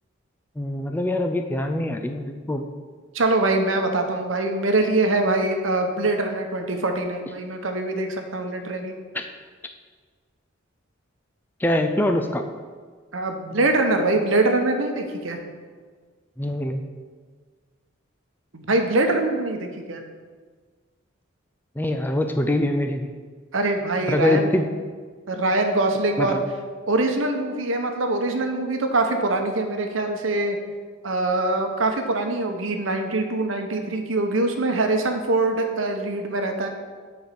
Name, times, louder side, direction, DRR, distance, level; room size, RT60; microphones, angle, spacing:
voice 1, 0.6-2.7 9.1-9.3 11.6-12.5 16.4-16.8 21.8-23.1 24.1-24.7 26.2-26.4, left 1 dB, 10° left, 5 dB, 0.4 m, -24 dB
voice 2, 3.1-8.9 13.1-15.4 18.5-20.0 23.5-24.5 25.3-26.4 26.9-30.6 31.0-36.7, right 2 dB, 75° right, 5 dB, 1.0 m, -23 dB
8.0 x 4.4 x 6.8 m, 1.5 s
head